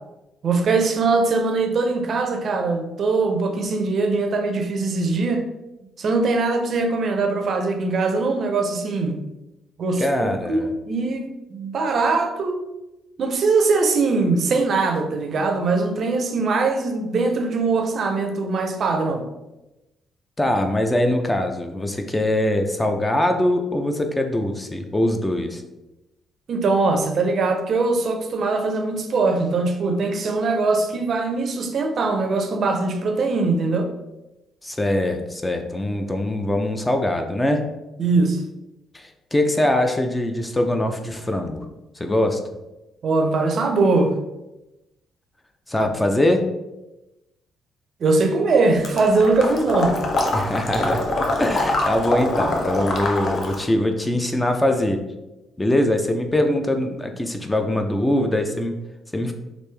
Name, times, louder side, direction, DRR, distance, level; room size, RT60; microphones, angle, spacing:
voice 1, 0.4-5.4 6.0-9.2 9.8-12.6 13.2-19.3 26.5-33.9 38.0-38.4 43.0-44.1 48.0-50.0, right 3 dB, 55° right, 5 dB, 0.5 m, -21 dB
voice 2, 10.0-10.7 20.4-25.6 34.6-37.6 38.9-41.7 42.0-42.4 45.7-46.4 50.3-51.0 51.4-55.0 55.6-58.8 59.1-59.3, left 1 dB, 15° left, 5 dB, 0.4 m, -22 dB
Water / Liquid, 48.8-53.7, left 2 dB, 55° left, 0.6 m, -24 dB
3.2 x 2.5 x 3.3 m, 0.99 s
cardioid pair, 90°, 0 cm